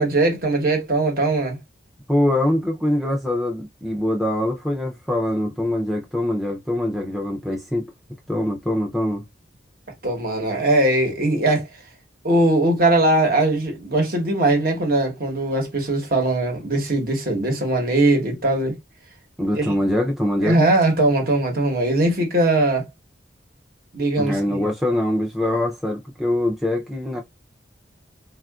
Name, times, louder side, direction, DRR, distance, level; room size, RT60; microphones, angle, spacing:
voice 1, 0.0-1.6 10.0-11.7 12.2-18.8 19.6-19.7 20.4-22.8 23.9-24.6, right 2 dB, 55° right, 1.0 m, -20 dB
voice 2, 2.1-7.9 8.3-9.2 19.4-20.7 24.2-27.2, left 1 dB, ahead, 0.4 m, -23 dB
3.5 x 2.4 x 2.3 m
head